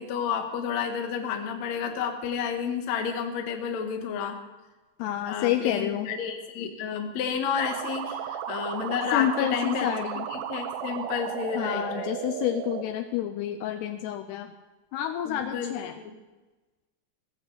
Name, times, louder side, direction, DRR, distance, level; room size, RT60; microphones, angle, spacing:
voice 1, 0.0-4.4 5.3-9.9 10.3-12.2 15.3-15.8 16.0-16.2, left 7 dB, 65° left, 4 dB, 1.8 m, -31 dB
voice 2, 5.0-6.1 9.1-10.3 11.6-14.5 14.9-15.9, left 12 dB, 80° left, 8 dB, 2.5 m, -29 dB
sound 1, 7.6-12.8, right 9 dB, 80° right, 2.1 m, -34 dB
17.0 x 14.5 x 4.0 m, 1.2 s
omnidirectional pair, 5.3 m